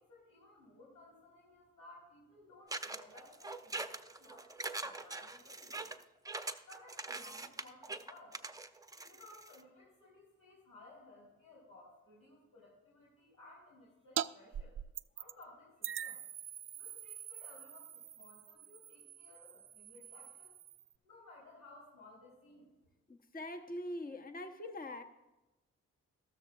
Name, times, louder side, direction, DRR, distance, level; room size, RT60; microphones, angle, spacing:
voice 1, 0.0-5.9 6.4-8.4 9.0-14.7 15.1-16.2 16.7-20.5 21.0-22.7, left 2 dB, 80° left, -7 dB, 3.8 m, -59 dB
sound 1, 2.7-9.6, right 3 dB, 10° right, 0.7 m, -43 dB
sound 2, 14.2-14.3 14.5-15.4 15.8-20.9, right 9 dB, 40° right, 0.4 m, -43 dB
voice 2, 23.1-25.0, left 1 dB, 25° left, 7 dB, 1.0 m, -43 dB
13.5 x 13.0 x 2.4 m, 1.0 s
supercardioid pair, 45°, 33 cm